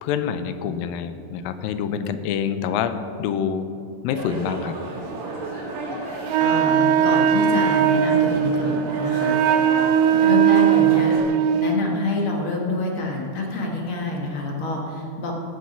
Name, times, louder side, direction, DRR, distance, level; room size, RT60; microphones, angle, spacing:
voice 1, 0.0-3.7 4.0-4.8, left 8 dB, 85° left, 10 dB, 2.4 m, -26 dB
sound 1, 4.1-11.2, right 2 dB, 60° right, 3.3 m, -34 dB
sound 2, 5.2-11.2, right 2 dB, 25° right, 2.9 m, -42 dB
voice 2, 6.1-9.8 10.1-11.1 11.6-15.3, left 2 dB, 55° left, 0 dB, 1.5 m, -27 dB
Wind instrument woodwind instrument, 6.3-11.8, right 9 dB, 80° right, 2.1 m, -19 dB
17.0 x 6.2 x 5.9 m, 2.6 s
omnidirectional pair, 4.2 m